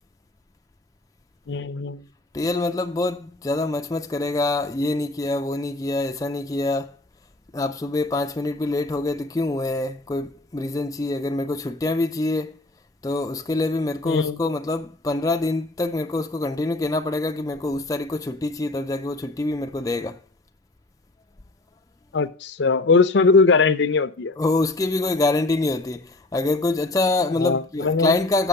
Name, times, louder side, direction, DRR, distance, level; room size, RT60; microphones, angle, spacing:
voice 1, 1.5-2.0 14.0-14.4 22.1-24.3 27.4-28.1, left 4 dB, 70° left, 0.5 m, -20 dB
voice 2, 2.3-7.0 7.5-12.5 13.0-20.2 24.4-28.5, left 2 dB, 20° left, 0.4 m, -25 dB
7.0 x 6.0 x 6.5 m
head